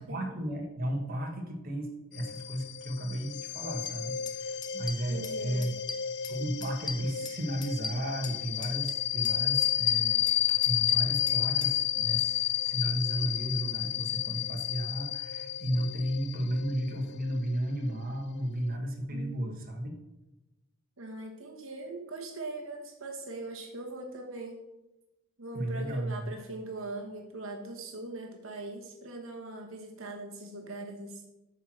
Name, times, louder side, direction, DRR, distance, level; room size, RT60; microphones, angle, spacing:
voice 1, 0.0-5.7 6.3-10.2 10.6-19.9 25.5-26.3, right 1 dB, 45° right, 2 dB, 1.4 m, -34 dB
sound 1, 2.1-18.4, left 11 dB, 55° left, 0.4 m, -31 dB
sound 2, 3.9-4.0 4.3-4.4 4.6-5.4 5.6-6.4 6.6-8.4 8.6-9.4 9.6-11.7, left 4 dB, 20° left, 0.7 m, -39 dB
voice 2, 5.1-5.6 19.1-19.6 21.0-24.6 25.4-31.3, right 2 dB, 75° right, 2 dB, 1.2 m, -41 dB
8.1 x 4.6 x 6.1 m, 0.97 s
head